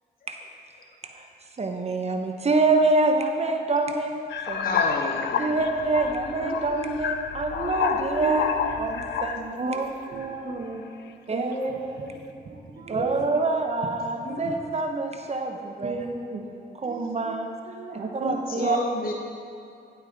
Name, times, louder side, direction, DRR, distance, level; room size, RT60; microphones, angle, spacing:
voice 1, 1.6-4.2 4.5-4.8 5.4-8.5 8.8-9.8 11.3-11.5 12.9-16.0 16.8-17.5 18.2-18.8, right 3 dB, 35° right, 4 dB, 0.9 m, -26 dB
sound 1, 4.3-9.6 10.2-10.6, left 7 dB, 90° left, 0.5 m, -29 dB
voice 2, 4.6-5.6 18.2-19.1, left 3 dB, 55° left, 1 dB, 0.9 m, -30 dB
voice 3, 6.3-7.1 7.6-9.0 9.6-10.8 11.3-13.3 14.2-14.6 15.8-16.5 16.8-17.3 17.6-18.7, right 3 dB, 55° right, -3 dB, 1.2 m, -34 dB
11.0 x 8.7 x 4.0 m, 2.5 s
cardioid pair, 75°, 18 cm